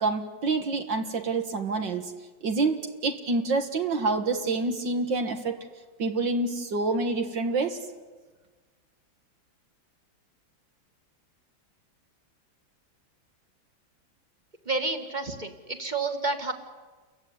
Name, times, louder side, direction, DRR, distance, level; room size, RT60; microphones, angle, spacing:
voice 1, 0.0-2.1 2.4-5.6 6.0-7.8, right 3 dB, 70° right, 6 dB, 2.3 m, -27 dB
voice 2, 14.7-16.5, right 3 dB, 25° right, 6 dB, 1.9 m, -30 dB
29.5 x 15.5 x 9.6 m, 1.3 s
omnidirectional pair, 2.1 m